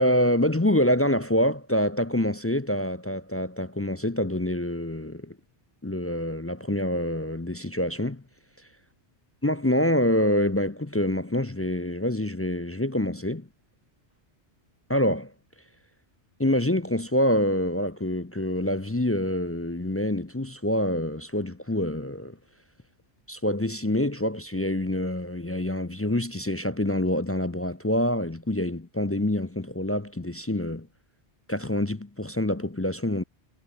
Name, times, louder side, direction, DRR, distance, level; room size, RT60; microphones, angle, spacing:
voice 1, 0.0-5.4 5.8-8.2 9.4-13.5 14.9-15.3 16.4-22.4 23.3-30.9 31.5-33.2, left 1 dB, 15° left, 0.5 m, -26 dB
omnidirectional pair, 1.1 m